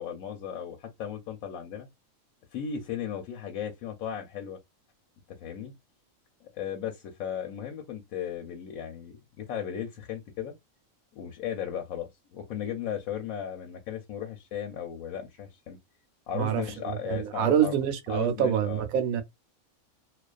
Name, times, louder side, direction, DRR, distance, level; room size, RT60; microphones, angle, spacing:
voice 1, 0.0-1.9 2.5-4.6 5.4-5.7 6.4-10.5 11.1-15.8 16.3-17.8 18.1-18.8, left 9 dB, 85° left, 1.0 m, -36 dB
voice 2, 16.3-19.2, right 9 dB, 90° right, 1.0 m, -26 dB
2.3 x 2.3 x 2.3 m
omnidirectional pair, 1.4 m